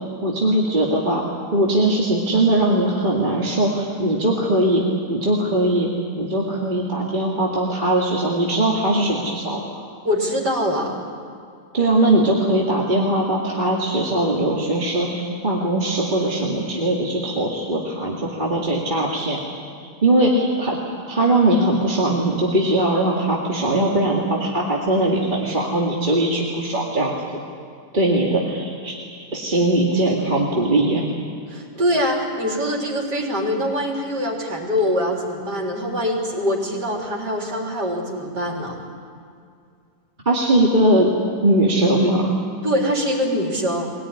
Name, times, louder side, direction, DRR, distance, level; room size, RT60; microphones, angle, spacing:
voice 1, 0.2-1.2 1.5-4.8 5.1-5.9 6.2-9.7 11.7-19.4 20.0-20.8 21.1-27.1 27.9-28.9 29.3-31.0 40.3-41.1 41.4-42.3, right 1 dB, 30° right, -3 dB, 2.3 m, -20 dB
voice 2, 10.0-10.9 31.5-38.8 42.6-43.9, equal, 85° right, -1 dB, 4.3 m, -23 dB
23.0 x 18.0 x 9.9 m, 2.3 s
omnidirectional pair, 1.7 m